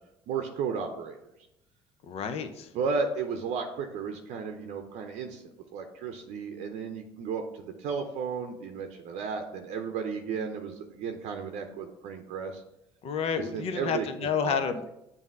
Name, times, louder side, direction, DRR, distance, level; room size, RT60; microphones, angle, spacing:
voice 1, 0.3-1.2 2.7-5.4 5.7-12.6 13.4-14.6, right 5 dB, 65° right, 4 dB, 0.7 m, -34 dB
voice 2, 2.0-2.7 13.0-14.9, left 6 dB, 55° left, 9 dB, 0.7 m, -30 dB
7.2 x 2.7 x 5.4 m, 0.85 s
hypercardioid pair, 65°, 12 cm